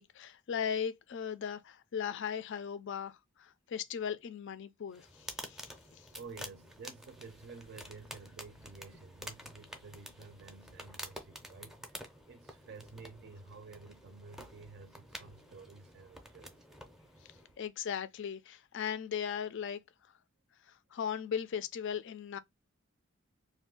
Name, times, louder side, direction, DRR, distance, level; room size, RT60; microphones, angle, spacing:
voice 1, 0.0-6.1 17.6-19.8 20.9-22.4, left 7 dB, 60° left, 0.4 m, -38 dB
sound 1, 4.9-17.6, equal, ahead, 0.5 m, -49 dB
voice 2, 6.1-16.6, right 4 dB, 55° right, 0.4 m, -52 dB
2.5 x 2.3 x 3.5 m
head